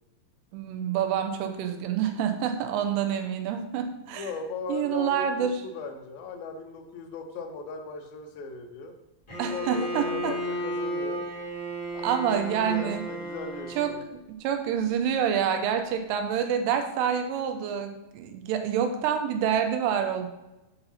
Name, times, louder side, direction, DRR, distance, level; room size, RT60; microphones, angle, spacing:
voice 1, 0.5-4.3 4.7-5.6 9.4-10.3 12.0-13.0 13.8-13.9 14.3-20.3, right 8 dB, 90° right, 6 dB, 2.7 m, -27 dB
voice 2, 4.1-9.0 9.5-10.4 10.6-11.3 11.9-14.0, left 4 dB, 75° left, 4 dB, 2.4 m, -38 dB
Bowed string instrument, 9.3-14.0, equal, 20° left, 1.0 m, -34 dB
6.9 x 2.7 x 5.6 m, 0.97 s
omnidirectional pair, 4.6 m